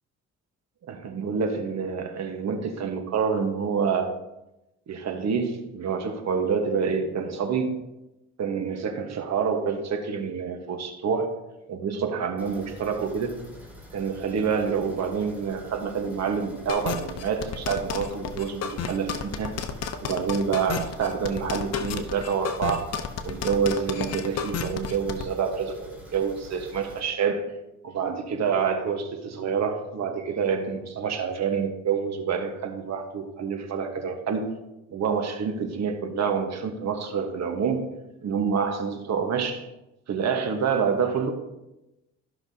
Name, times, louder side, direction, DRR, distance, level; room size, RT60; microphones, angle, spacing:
voice 1, 0.9-4.2 4.9-7.9 8.4-11.4 11.7-13.4 13.9-19.5 20.0-22.9 23.2-27.5 27.8-34.5 34.9-37.9 38.2-39.7 40.1-41.3, right 6 dB, 60° right, 5 dB, 1.3 m, -27 dB
sound 1, 12.4-27.0, left 1 dB, 5° right, 2.4 m, -47 dB
sound 2, 16.7-25.2, left 7 dB, 55° left, 0.8 m, -31 dB
13.5 x 5.7 x 2.8 m, 0.95 s
cardioid pair, 90°, 30 cm